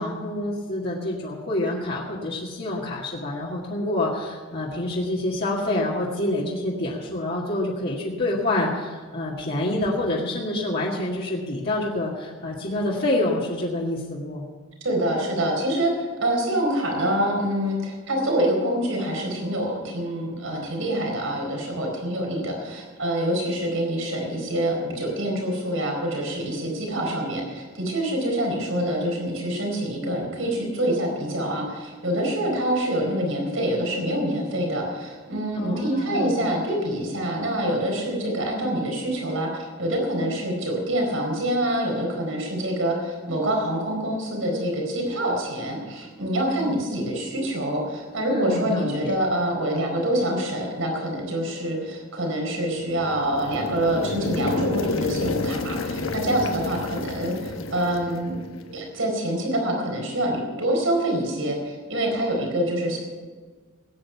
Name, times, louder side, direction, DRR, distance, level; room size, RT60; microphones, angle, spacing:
voice 1, 0.0-14.5 35.5-36.4 48.2-49.1, left 1 dB, 50° left, -5 dB, 2.0 m, -27 dB
voice 2, 14.8-58.3 58.7-63.0, right 1 dB, 80° right, 0 dB, 4.3 m, -26 dB
sound 1, 52.8-58.8, left 3 dB, 75° left, 1.2 m, -30 dB
19.5 x 9.2 x 5.8 m, 1.5 s
head